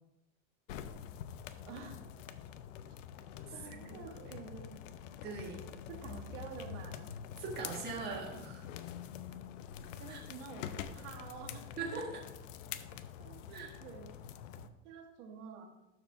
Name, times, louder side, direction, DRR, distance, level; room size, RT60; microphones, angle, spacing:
sound 1, 0.7-14.7, left 9 dB, 85° left, 0.7 m, -46 dB
voice 1, 1.6-2.0 3.5-4.7 5.9-7.1 10.0-11.7 13.2-14.1 14.8-15.7, right 6 dB, 75° right, 3 dB, 1.7 m, -48 dB
voice 2, 5.2-5.6 7.4-8.6 10.1-10.2 11.8-12.2 13.5-13.7, right 4 dB, 25° right, -2 dB, 1.7 m, -41 dB
12.0 x 4.9 x 3.4 m, 0.94 s
supercardioid pair, 150°, 37 cm